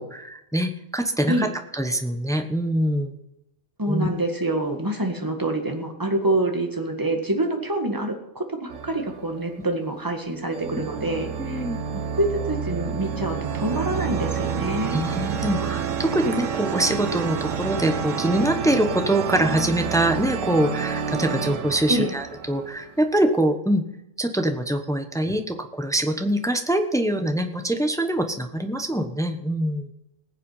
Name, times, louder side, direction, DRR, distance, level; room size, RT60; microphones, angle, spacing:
voice 1, 0.0-1.5 1.7-3.1 3.9-4.1 11.4-11.8 14.9-23.8 24.2-29.9, right 1 dB, 5° left, 6 dB, 1.0 m, -24 dB
voice 2, 3.8-11.6 12.2-15.0 21.9-22.1, right 1 dB, 15° right, 3 dB, 1.8 m, -26 dB
sound 1, 8.7-9.9 10.5-23.2, right 7 dB, 75° right, 1.4 m, -29 dB
20.0 x 7.6 x 5.7 m, 0.87 s
omnidirectional pair, 1.3 m